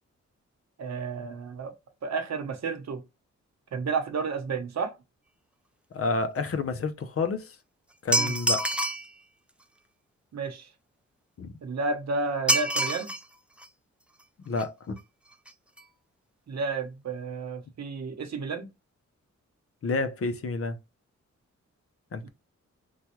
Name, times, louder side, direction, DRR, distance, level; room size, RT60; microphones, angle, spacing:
voice 1, 0.8-1.7 2.0-3.0 3.7-4.9 8.1-8.3 10.3-10.7 11.6-13.1 16.5-18.7 22.2-22.3, right 4 dB, 65° right, 0.9 m, -31 dB
voice 2, 5.9-7.6 8.0-8.7 11.4-11.6 14.4-15.0 19.8-20.8 22.1-22.3, left 3 dB, 50° left, 0.6 m, -29 dB
sound 1, 8.1-9.1 12.5-13.2 13.6-13.7 14.6-14.7 15.0-15.1 15.3-15.5 15.8-15.9, right 1 dB, 5° right, 0.3 m, -26 dB
3.2 x 2.3 x 2.8 m
wide cardioid pair, 110°, 29 cm